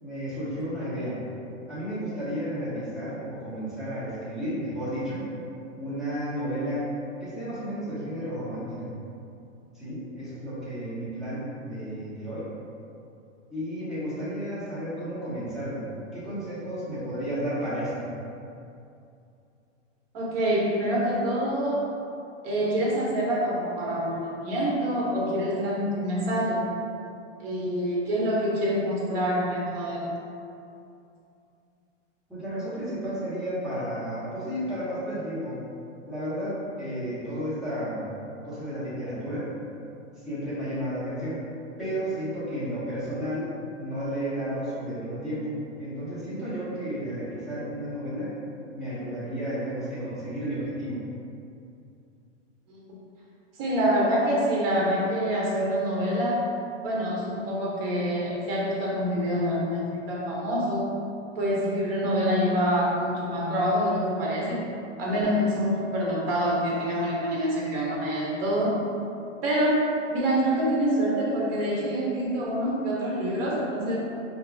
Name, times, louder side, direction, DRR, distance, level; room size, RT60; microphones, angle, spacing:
voice 1, 0.0-1.2 1.7-5.2 5.8-6.9 7.2-8.9 9.7-12.4 13.5-18.1 32.3-35.6 36.1-38.0 38.4-39.5 40.2-41.4 41.8-43.5 43.8-48.3 48.7-51.0, equal, ahead, -14 dB, 0.8 m, -32 dB
voice 2, 20.1-21.8 22.4-26.6 27.4-30.1 52.7-53.0 53.6-56.5 56.8-60.9 61.4-68.8 69.4-74.0, equal, 50° right, -4 dB, 1.0 m, -26 dB
2.8 x 2.3 x 3.4 m, 2.6 s
hypercardioid pair, 140°, 38 cm